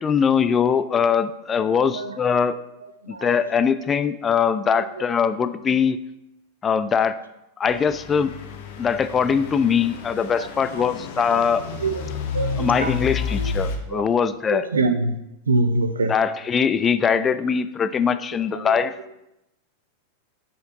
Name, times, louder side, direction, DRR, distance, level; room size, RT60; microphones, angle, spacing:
voice 1, 0.0-2.6 3.1-6.0 6.6-7.2 7.6-8.3 8.8-11.6 12.6-14.7 16.1-18.9, left 6 dB, 20° left, 12 dB, 0.3 m, -21 dB
Truck / Idling, 7.7-13.8, left 5 dB, 50° left, 0.8 m, -31 dB
voice 2, 12.3-12.9 13.4-13.5 13.9-14.0 14.5-15.1 15.5-16.1 18.6-18.8, right 3 dB, 70° right, 10 dB, 0.5 m, -24 dB
7.7 x 4.3 x 3.8 m, 0.90 s
figure-of-eight pair, 90°, 0 cm